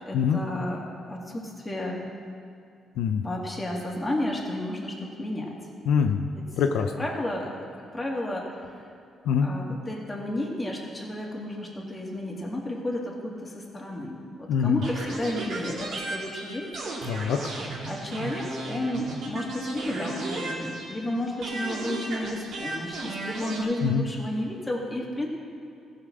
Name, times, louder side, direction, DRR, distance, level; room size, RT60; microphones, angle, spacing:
voice 1, 0.1-2.0 3.2-5.6 6.3-6.5 7.0-8.5 9.4-16.7 17.9-25.3, left 1 dB, 15° left, -2 dB, 2.3 m, -32 dB
voice 2, 5.9-6.3 6.6-6.9 9.3-9.5 14.5-14.8 17.1-17.4 23.8-24.1, left 7 dB, 85° left, 6 dB, 0.6 m, -24 dB
sound 1, 14.8-21.1 21.4-23.6, right 2 dB, 65° right, 2.5 m, -34 dB
15.0 x 5.7 x 6.2 m, 2.5 s
cardioid pair, 90°, 0 cm